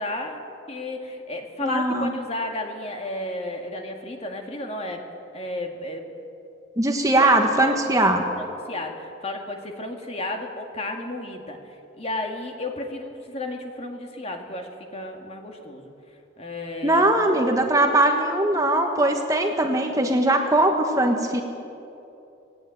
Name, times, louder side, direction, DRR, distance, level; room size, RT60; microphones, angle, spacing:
voice 1, 0.0-5.0 5.3-6.1 7.2-7.8 8.4-15.9 16.4-17.1, left 2 dB, 30° left, 2 dB, 2.0 m, -33 dB
voice 2, 1.6-2.1 6.8-8.2 16.8-21.4, right 1 dB, 15° right, 3 dB, 1.3 m, -20 dB
19.0 x 17.0 x 9.1 m, 2.8 s
head